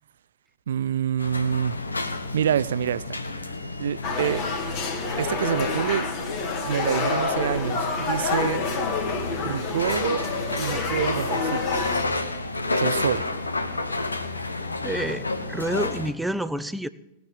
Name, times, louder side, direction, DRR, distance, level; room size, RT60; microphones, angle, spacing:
voice 1, 0.7-1.8 2.3-3.2 3.8-4.4 5.2-6.1 6.6-8.6 9.4-10.2 10.6-11.9 12.8-13.3, right 9 dB, 65° right, 0.5 m, -27 dB
sound 1, 1.2-16.1, left 2 dB, 80° left, 1.1 m, -31 dB
sound 2, 4.0-12.0, left 4 dB, 40° left, 2.1 m, -28 dB
voice 2, 14.8-16.9, right 1 dB, 5° right, 0.6 m, -28 dB
18.5 x 6.5 x 8.7 m
figure-of-eight pair, 95°, 0 cm